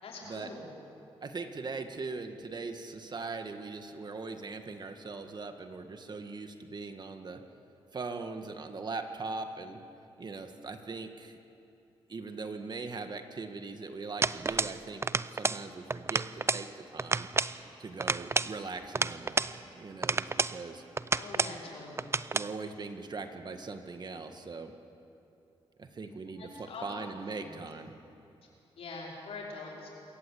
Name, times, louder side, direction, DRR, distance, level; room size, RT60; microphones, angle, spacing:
voice 1, 0.0-0.7 21.2-22.1 26.4-27.6 28.8-29.9, left 3 dB, 75° left, -3 dB, 5.3 m, -44 dB
voice 2, 1.2-7.4 7.9-9.8 10.2-11.4 12.1-17.3 17.8-20.8 22.3-24.8 25.8-27.9, right 4 dB, 45° right, 6 dB, 1.8 m, -40 dB
sound 1, 14.2-14.8 15.0-15.6 15.9-16.7 17.0-17.6 18.0-19.5 20.0-20.6 21.0-21.6 22.0-22.5, right 3 dB, 25° right, 0.6 m, -30 dB
26.5 x 14.5 x 8.7 m, 2.7 s
cardioid pair, 75°, 10 cm